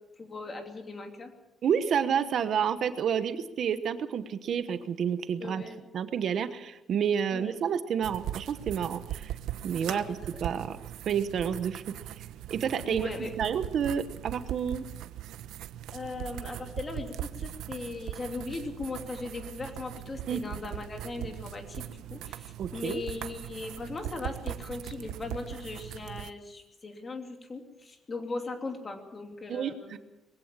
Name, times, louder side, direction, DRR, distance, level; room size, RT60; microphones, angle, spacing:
voice 1, 0.2-1.3 5.4-5.9 7.3-7.6 9.8-10.0 10.3-10.4 12.8-13.3 15.9-30.0, left 3 dB, 25° left, 4 dB, 2.9 m, -39 dB
voice 2, 1.6-5.6 5.9-9.3 9.6-10.8 11.1-12.2 12.5-13.1 13.4-14.8 20.3-20.4 22.6-23.0 29.5-30.0, right 8 dB, 50° right, 11 dB, 1.1 m, -30 dB
sound 1, 8.0-26.3, right 12 dB, 85° right, 0.9 m, -40 dB
21.5 x 16.5 x 7.4 m, 0.97 s
cardioid pair, 155°, 0 cm